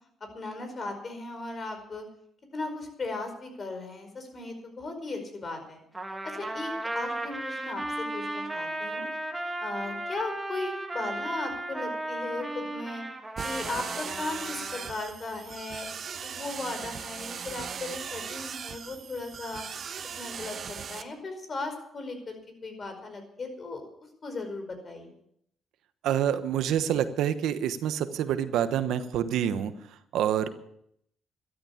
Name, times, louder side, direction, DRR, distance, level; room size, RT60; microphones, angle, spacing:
voice 1, 0.3-2.0 2.5-5.8 6.2-9.1 9.6-13.0 13.4-15.9 16.2-19.6 20.2-22.4 22.6-23.9 24.2-25.1, left 3 dB, 40° left, 6 dB, 5.1 m, -37 dB
Trumpet, 5.9-14.9, right 1 dB, 15° right, 2.4 m, -35 dB
sound 1, 13.4-21.0, right 7 dB, 55° right, 1.1 m, -38 dB
voice 2, 26.0-30.5, right 10 dB, 85° right, 11 dB, 1.1 m, -27 dB
13.0 x 12.5 x 7.2 m, 0.71 s
cardioid pair, 90°, 0 cm